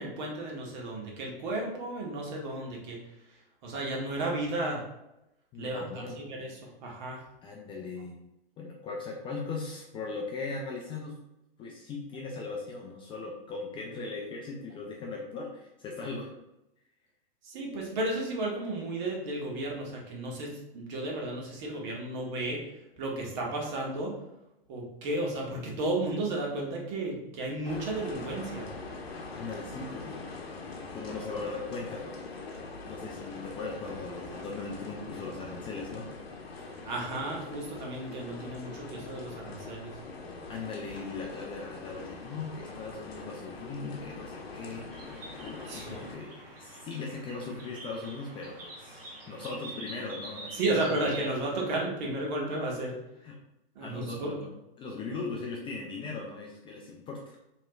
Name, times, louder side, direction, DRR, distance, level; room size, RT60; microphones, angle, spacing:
voice 1, 0.0-3.0 3.6-4.8 5.6-7.2 17.4-24.1 24.7-28.7 36.8-39.9 45.7-45.9 50.5-53.0 53.7-54.3, right 2 dB, 50° right, -2 dB, 1.3 m, -33 dB
voice 2, 5.5-6.3 7.4-8.2 8.6-11.2 11.6-16.3 29.3-30.4 30.8-36.1 40.5-50.5 50.9-51.0 53.2-53.4 53.8-57.4, left 3 dB, 15° left, -1 dB, 0.4 m, -39 dB
sound 1, 27.6-46.2, left 3 dB, 85° left, 0.8 m, -43 dB
sound 2, 44.9-51.6, right 2 dB, 70° right, 1.4 m, -45 dB
4.6 x 3.1 x 2.3 m, 0.87 s
hypercardioid pair, 115°, 30 cm